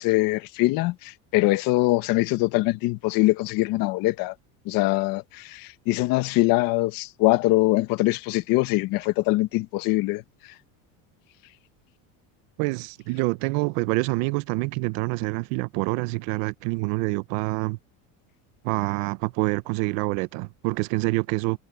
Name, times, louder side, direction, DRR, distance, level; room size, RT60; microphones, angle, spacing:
voice 1, 0.0-4.3 4.7-10.2, left 19 dB, 55° left, 1.4 m, -23 dB
voice 2, 12.6-17.8 18.6-21.6, right 24 dB, 65° right, 0.9 m, -26 dB
cardioid pair, 160°, 42 cm